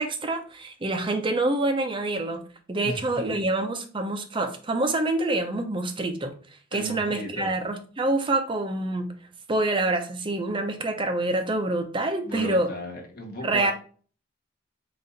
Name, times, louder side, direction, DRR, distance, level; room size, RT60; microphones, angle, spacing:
voice 1, 0.0-2.4 2.7-6.4 6.7-9.1 9.5-12.7 13.4-13.7, right 2 dB, 25° right, 5 dB, 0.5 m, -26 dB
voice 2, 2.8-3.5 6.7-7.5 12.2-13.7, left 1 dB, 50° left, 1 dB, 1.0 m, -36 dB
4.0 x 2.5 x 3.9 m, 0.41 s
head